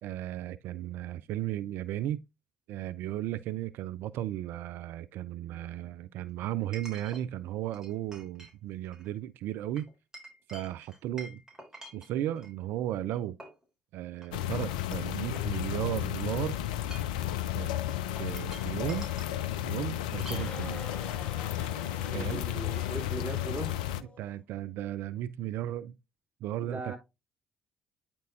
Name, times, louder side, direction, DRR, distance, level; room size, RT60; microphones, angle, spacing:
voice 1, 0.0-2.2 2.7-9.9 10.5-11.4 11.9-13.4 13.9-16.6 17.6-17.7 18.2-19.1 19.6-20.8 22.1-22.4 24.2-26.0 26.4-27.0, right 12 dB, 60° right, 0.3 m, -35 dB
Chink clink, 3.3-3.4 6.7-7.2 7.7-8.5 8.8-9.1 9.8-12.5 13.1-13.6 14.1-14.3 14.6-16.0 16.7-17.3 18.2-19.4 20.2-20.5, right 1 dB, 15° right, 3.7 m, -48 dB
sound 1, 14.3-24.0, left 12 dB, 75° left, 0.5 m, -33 dB
sound 2, 20.3-24.4, left 3 dB, 35° left, 1.8 m, -47 dB
voice 2, 22.1-23.9 26.6-27.0, right 2 dB, 40° right, 2.4 m, -39 dB
9.1 x 4.4 x 2.5 m
figure-of-eight pair, 50°, 4 cm